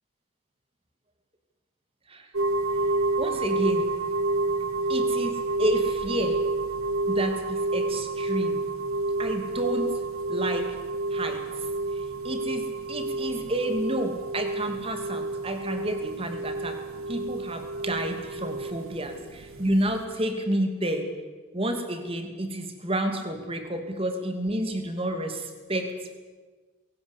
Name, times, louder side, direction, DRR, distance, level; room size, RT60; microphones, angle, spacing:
sound 1, 2.3-20.0, right 2 dB, 85° right, 2.0 m, -29 dB
voice 1, 3.2-3.9 4.9-5.3 5.6-6.4 7.1-8.6 9.2-9.9 10.3-10.8 11.1-11.4 12.2-16.8 17.1-21.1 21.5-26.1, right 1 dB, 25° right, 6 dB, 2.7 m, -30 dB
21.5 x 18.0 x 8.5 m, 1.3 s
head